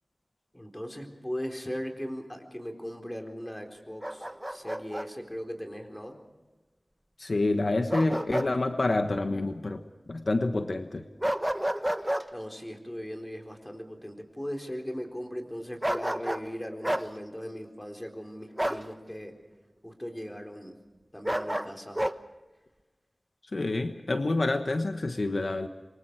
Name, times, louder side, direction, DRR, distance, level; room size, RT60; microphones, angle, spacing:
voice 1, 0.5-6.2 12.3-19.3 19.8-20.7 21.1-22.0, equal, 15° left, 3 dB, 4.1 m, -38 dB
Bark, 4.0-5.1 7.9-8.5 8.9-9.0 11.2-12.3 15.8-16.5 16.8-17.1 18.6-18.9 21.2-22.2, right 1 dB, 15° right, 1.0 m, -30 dB
voice 2, 7.2-9.8 10.1-11.0 23.5-25.7, left 2 dB, 70° left, 7 dB, 1.2 m, -28 dB
27.5 x 23.5 x 4.7 m, 1.2 s
wide cardioid pair, 65°, 0 cm